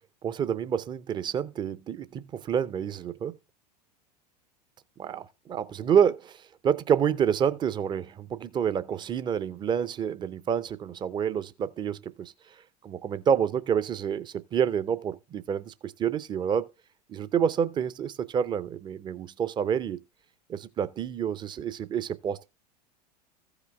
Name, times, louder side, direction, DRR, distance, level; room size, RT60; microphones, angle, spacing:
voice 1, 0.2-3.3 5.0-12.3 12.8-16.7 17.1-20.0 20.5-22.5, right 8 dB, 20° right, 0.6 m, -28 dB
15.0 x 5.1 x 3.5 m
figure-of-eight pair, 85°, 21 cm